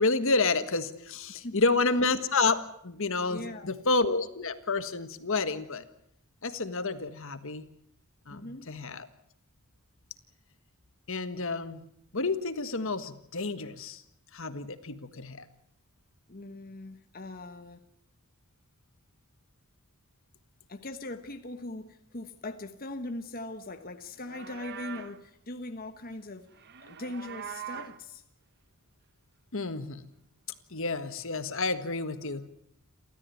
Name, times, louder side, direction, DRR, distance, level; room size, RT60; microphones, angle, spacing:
voice 1, 0.0-5.9 6.4-7.6 8.3-9.1 11.1-11.8 12.1-14.0 14.3-15.5 29.5-30.0 30.7-32.4, left 3 dB, 65° left, 11 dB, 1.6 m, -29 dB
voice 2, 3.3-3.7 8.3-8.7 16.3-17.8 20.7-26.5 26.8-28.2, left 2 dB, 40° left, 7 dB, 1.2 m, -40 dB
Livestock farm animals working animals, 24.1-25.2 26.5-28.0, right 9 dB, 50° right, 0.9 m, -43 dB
29.5 x 13.5 x 9.2 m, 0.74 s
head